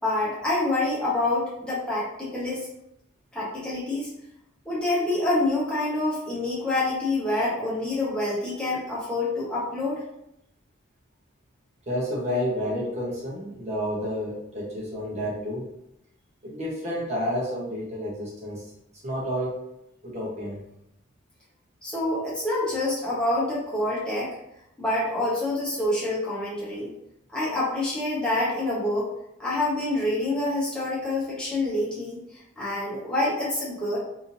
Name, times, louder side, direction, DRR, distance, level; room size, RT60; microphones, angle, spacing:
voice 1, 0.0-2.7 3.3-4.1 4.6-10.0 21.8-24.3 24.8-26.9 27.3-29.1 29.4-32.2 32.6-34.0, left 2 dB, 5° left, -8 dB, 1.1 m, -27 dB
voice 2, 11.9-15.7 16.4-18.6 19.0-19.6 20.0-20.6, equal, 35° right, -5 dB, 1.1 m, -30 dB
3.5 x 2.8 x 2.7 m, 0.81 s
head